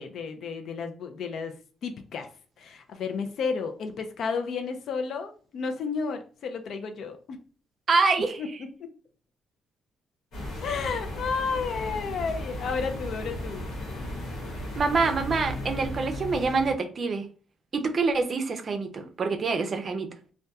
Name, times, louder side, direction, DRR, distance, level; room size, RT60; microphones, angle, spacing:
voice 1, 0.0-1.5 1.8-2.3 2.6-7.4 8.4-8.5 8.8-8.9 10.6-13.7, left 5 dB, 65° left, 6 dB, 0.4 m, -32 dB
voice 2, 7.9-8.4 14.8-17.3 17.7-20.1, right 4 dB, 45° right, 6 dB, 0.4 m, -26 dB
sound 1, 10.3-16.7, left 1 dB, 90° left, 1.1 m, -35 dB
2.7 x 2.2 x 2.2 m, 0.39 s
cardioid pair, 90°, 0 cm